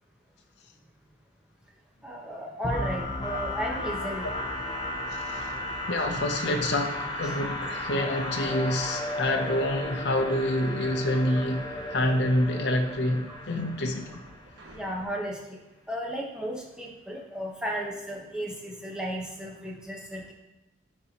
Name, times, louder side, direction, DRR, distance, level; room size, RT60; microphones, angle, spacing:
voice 1, 2.0-4.3 8.7-9.0 11.1-11.2 13.3-13.4 14.7-15.6 15.9-20.3, equal, 5° right, -2 dB, 1.0 m, -34 dB
sound 1, 2.6-14.4, left 1 dB, 25° left, 0.8 m, -34 dB
sound 2, 4.2-15.1, right 1 dB, 75° right, 1.3 m, -51 dB
voice 2, 5.1-5.5 5.9-14.2, left 1 dB, 60° left, 3 dB, 0.7 m, -27 dB
11.0 x 4.4 x 2.9 m, 1.0 s
head